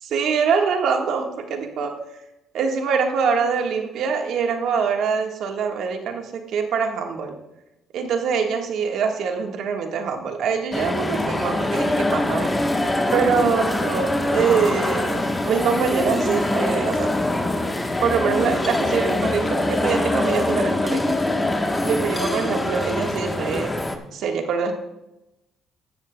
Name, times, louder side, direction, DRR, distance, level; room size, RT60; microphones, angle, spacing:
voice 1, 0.0-2.0 2.5-7.4 7.9-12.5 13.1-17.1 17.4-17.7 18.0-21.2 21.8-23.7 24.1-24.7, right 6 dB, 70° right, 3 dB, 1.4 m, -24 dB
sound 1, 10.7-24.0, left 2 dB, 15° left, 1.1 m, -23 dB
14.5 x 10.5 x 2.2 m, 0.92 s
cardioid pair, 85°, 0 cm